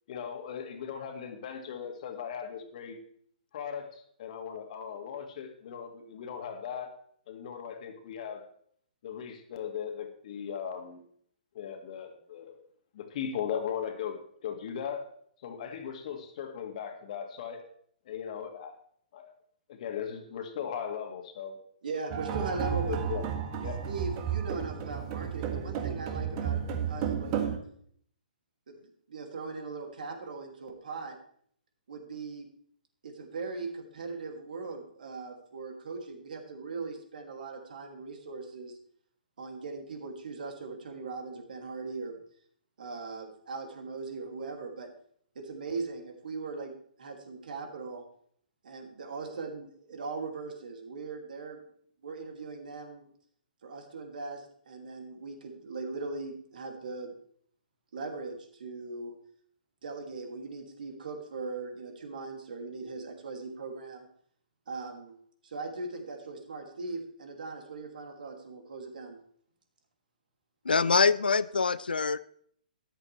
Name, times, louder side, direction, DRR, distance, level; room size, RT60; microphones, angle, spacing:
voice 1, 0.1-3.0 3.5-6.9 7.3-8.5 9.0-11.0 11.5-12.6 12.9-15.1 15.4-17.6 18.1-18.8 19.1-19.3 19.7-21.6 22.9-23.2 23.6-23.8, left 8 dB, 50° left, 4 dB, 2.2 m, -38 dB
voice 2, 21.8-23.0 23.9-26.6 26.9-27.3 28.7-31.2 31.9-32.5 33.0-38.8 39.4-42.2 42.8-44.9 45.3-48.0 48.6-51.6 52.0-53.1 53.6-57.1 57.9-59.1 59.8-64.1 64.7-65.2 65.4-69.2, right 3 dB, 65° right, 4 dB, 2.5 m, -39 dB
sound 1, 22.1-27.6, right 8 dB, 35° right, 1.6 m, -32 dB
voice 3, 70.6-72.2, left 5 dB, 80° left, 16 dB, 0.5 m, -24 dB
13.5 x 11.0 x 3.3 m, 0.63 s
figure-of-eight pair, 125°, 5 cm